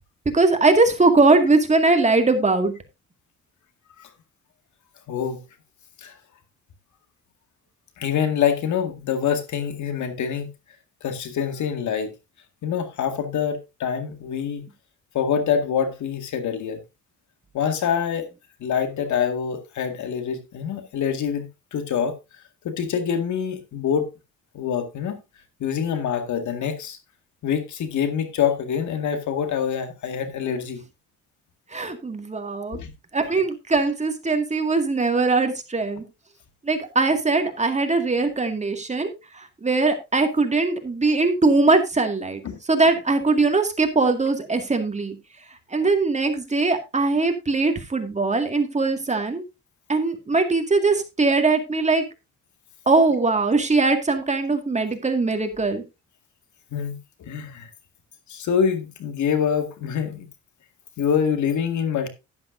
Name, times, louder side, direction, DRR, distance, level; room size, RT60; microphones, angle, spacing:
voice 1, 0.3-2.7 31.7-32.8 33.1-36.0 36.6-42.4 42.7-45.2 45.7-49.4 49.9-52.0 52.9-55.8, right 3 dB, 25° right, 2.1 m, -21 dB
voice 2, 5.1-5.4 6.0-6.1 8.0-10.5 11.0-12.1 12.6-14.6 15.1-16.8 17.5-18.3 18.6-22.1 22.6-24.1 24.5-25.2 25.6-27.0 27.4-30.8 32.7-32.9 42.4-42.6 56.7-57.7 58.3-60.3 61.0-62.1, left 7 dB, 70° left, 2.1 m, -25 dB
11.0 x 11.0 x 2.6 m
cardioid pair, 90°, 30 cm